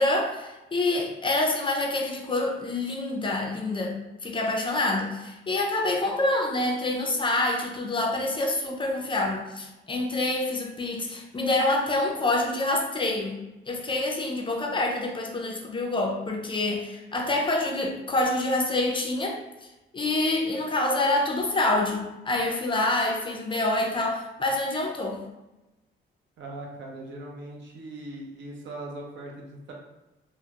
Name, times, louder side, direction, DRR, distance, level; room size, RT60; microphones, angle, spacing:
voice 1, 0.0-4.0 4.2-13.4 13.7-19.4 19.9-25.2, left 2 dB, 25° left, 1 dB, 0.4 m, -26 dB
voice 2, 26.4-29.7, right 2 dB, 70° right, -1 dB, 0.7 m, -40 dB
2.2 x 2.0 x 2.8 m, 1.0 s
cardioid pair, 90°, 20 cm